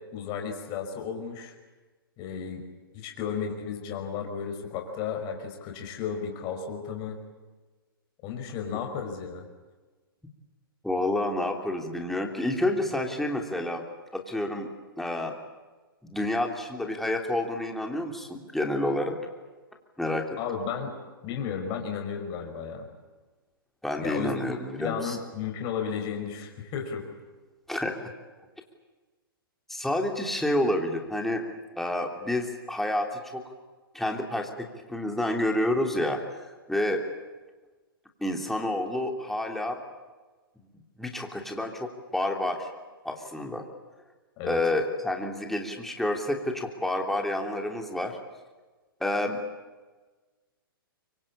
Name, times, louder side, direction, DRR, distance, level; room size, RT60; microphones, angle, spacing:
voice 1, 0.1-1.5 2.2-2.6 2.9-7.2 8.2-9.4 20.4-20.9 21.2-22.9 24.0-27.0 44.4-44.6, left 7 dB, 35° left, 3 dB, 5.1 m, -33 dB
voice 2, 10.8-13.8 14.1-14.7 15.0-15.3 16.0-19.2 20.0-20.3 23.8-25.2 27.7-28.1 29.7-31.4 31.8-33.4 33.9-37.0 38.2-39.8 41.0-42.7 43.0-43.6 44.4-48.2 49.0-49.4, left 1 dB, ahead, 2 dB, 3.2 m, -29 dB
24.5 x 24.0 x 8.7 m, 1.3 s
hypercardioid pair, 125°, 12 cm